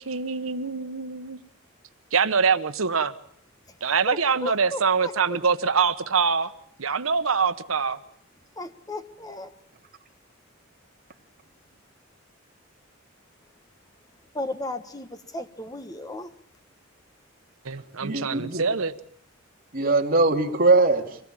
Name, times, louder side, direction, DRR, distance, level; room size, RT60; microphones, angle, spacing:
voice 1, 0.0-1.4 2.1-3.1 3.8-6.5 6.8-8.0 17.6-18.9, right 5 dB, 80° right, 12 dB, 1.1 m, -24 dB
voice 2, 4.1-5.1 8.6-9.5 14.3-16.3, left 2 dB, 20° left, 10 dB, 1.4 m, -35 dB
voice 3, 18.0-18.6 19.7-21.2, right 3 dB, 45° right, 2 dB, 2.7 m, -21 dB
25.0 x 18.5 x 8.8 m, 0.66 s
head